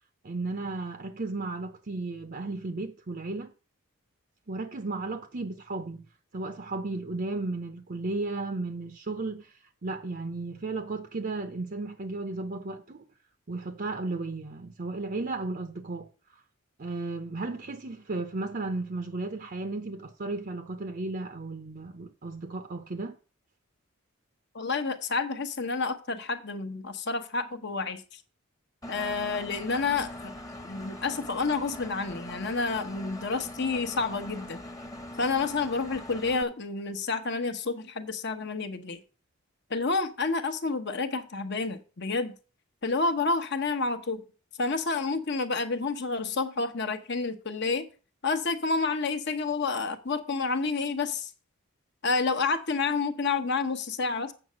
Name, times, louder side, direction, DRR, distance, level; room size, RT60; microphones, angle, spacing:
voice 1, 0.2-3.5 4.5-6.1 6.3-13.1 13.5-16.1 16.8-23.2, right 3 dB, 40° right, 0.7 m, -34 dB
voice 2, 24.5-28.2 28.9-30.3 30.6-34.6 35.2-39.0 39.7-42.3 42.8-44.2 44.6-47.9 48.2-51.3 52.0-54.3, left 4 dB, 50° left, 1.0 m, -29 dB
Engine, 28.8-36.4, left 1 dB, 15° left, 1.0 m, -42 dB
7.9 x 6.5 x 6.2 m
head